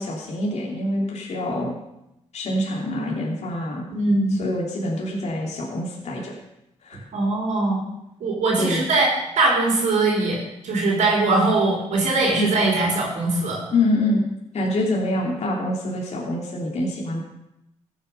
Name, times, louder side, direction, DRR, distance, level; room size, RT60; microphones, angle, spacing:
voice 1, 0.0-1.7 2.3-3.8 4.4-6.3 6.8-7.0 8.6-8.8 12.4-12.5 13.7-14.3 14.5-17.2, left 1 dB, 60° left, -2 dB, 3.2 m, -25 dB
voice 2, 3.9-4.4 7.1-7.8 8.2-9.1 9.4-13.6, right 2 dB, 80° right, -3 dB, 4.2 m, -21 dB
14.5 x 9.2 x 5.6 m, 0.88 s
cardioid pair, 95°, 13 cm